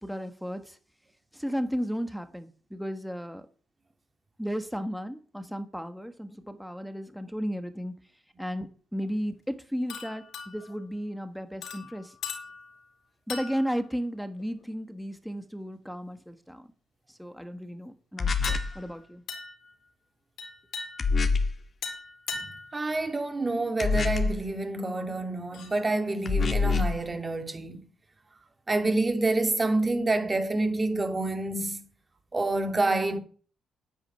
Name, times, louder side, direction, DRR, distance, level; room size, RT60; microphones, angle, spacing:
voice 1, 0.0-0.8 1.3-3.5 4.4-8.0 8.4-12.1 13.3-16.7 17.1-19.2, equal, ahead, 1.5 m, -34 dB
sound 1, 9.9-10.8 11.6-12.8 13.3-13.8 14.4-14.6 18.4-19.0 19.3-19.7 20.4-21.3 21.8-22.8 23.9-24.0 25.5-25.8, left 5 dB, 75° left, 4.1 m, -39 dB
sound 2, 18.2-18.8 21.0-21.6 23.8-24.5 26.3-27.0, left 4 dB, 40° left, 1.7 m, -25 dB
voice 2, 22.7-27.9 28.7-31.8 32.3-33.2, right 2 dB, 25° right, 2.5 m, -27 dB
10.0 x 9.8 x 9.2 m
cardioid pair, 90°, 0 cm